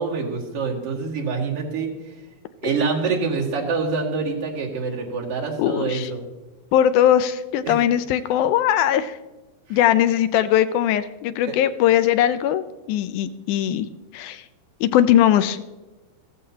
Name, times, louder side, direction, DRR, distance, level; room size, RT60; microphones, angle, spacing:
voice 1, 0.0-1.9 2.6-6.2 7.7-7.8 9.7-9.8 11.5-11.6, right 4 dB, 50° right, -3 dB, 2.9 m, -26 dB
voice 2, 5.6-6.1 6.7-9.2 9.7-13.9 14.1-14.4 14.8-15.6, left 11 dB, 85° left, 13 dB, 2.0 m, -20 dB
15.5 x 14.0 x 2.8 m, 1.1 s
omnidirectional pair, 3.6 m